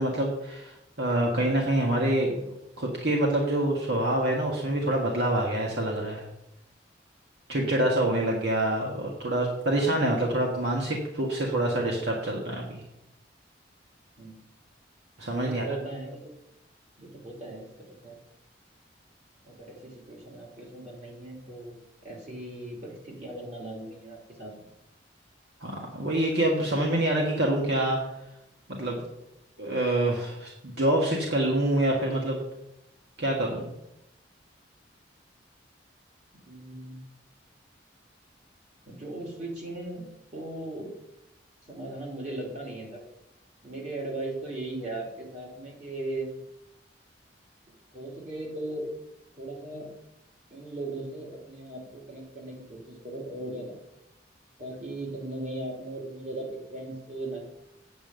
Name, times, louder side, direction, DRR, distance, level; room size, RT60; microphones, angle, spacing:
voice 1, 0.0-2.3 2.8-6.2 7.5-12.8 15.2-15.6 25.6-28.0 28.7-29.1 29.6-32.4 33.2-33.7, right 1 dB, 65° right, -1 dB, 1.6 m, -26 dB
voice 2, 15.4-16.3 17.0-17.7 18.0-18.2 19.4-24.5 36.5-37.0 38.9-40.9 41.7-43.0 43.6-46.3 47.9-48.8 49.4-49.9 50.5-53.8 54.6-57.5, right 2 dB, 40° right, -2 dB, 2.9 m, -38 dB
8.7 x 5.4 x 7.6 m, 0.86 s
head